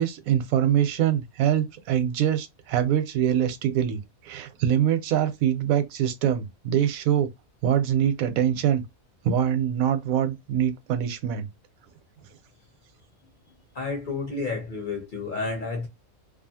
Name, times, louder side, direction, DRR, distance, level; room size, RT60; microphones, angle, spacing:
voice 1, 0.0-7.3 7.6-8.8 9.2-11.5, right 10 dB, 90° right, 1.0 m, -24 dB
voice 2, 13.7-15.9, left 3 dB, 50° left, 0.7 m, -30 dB
2.5 x 2.4 x 2.7 m
omnidirectional pair, 1.4 m